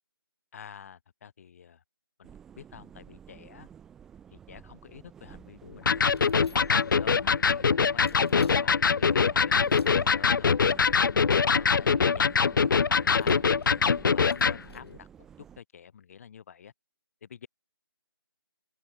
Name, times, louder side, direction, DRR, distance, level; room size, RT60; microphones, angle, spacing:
voice 1, 0.5-1.8 2.2-3.7 4.3-6.1 6.8-10.6 11.0-13.4 13.8-15.1 15.4-16.7 17.2-17.5, left 7 dB, 35° left, 6.5 m, -48 dB
sound 1, 2.2-15.6, right 8 dB, 5° right, 0.5 m, -51 dB
Electric guitar, 5.9-14.6, left 5 dB, 55° left, 0.5 m, -23 dB
sound 2, 6.1-7.0 8.0-8.6 9.6-10.1 11.2-11.9 13.1-14.9, left 3 dB, 80° left, 6.0 m, -59 dB
open air
figure-of-eight pair, 160°, 13 cm